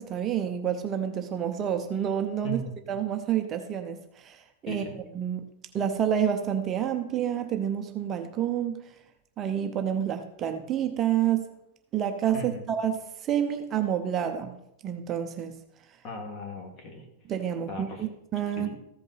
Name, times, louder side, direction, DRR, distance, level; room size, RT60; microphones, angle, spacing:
voice 1, 0.0-2.6 2.9-4.8 5.1-5.4 5.7-8.8 9.4-11.4 11.9-14.5 14.8-15.6 17.3-18.7, right 9 dB, 30° right, 6 dB, 0.7 m, -28 dB
voice 2, 4.7-5.0 12.3-12.7 16.0-17.1 17.7-18.0 18.6-18.8, left 1 dB, 35° left, 2 dB, 2.4 m, -37 dB
14.5 x 5.3 x 4.1 m, 0.80 s
supercardioid pair, 135°, 0 cm